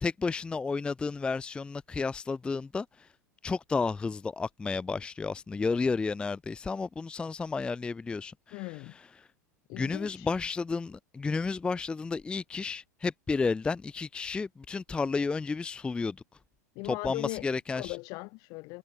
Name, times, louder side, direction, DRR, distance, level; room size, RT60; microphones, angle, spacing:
voice 1, 0.0-3.1 3.4-8.3 9.8-16.2 17.0-17.9, left 4 dB, 10° left, 0.4 m, -32 dB
voice 2, 8.5-9.0 9.7-10.3 16.7-17.5 17.7-18.8, left 27 dB, 40° left, 0.8 m, -38 dB
figure-of-eight pair, 85°, 10 cm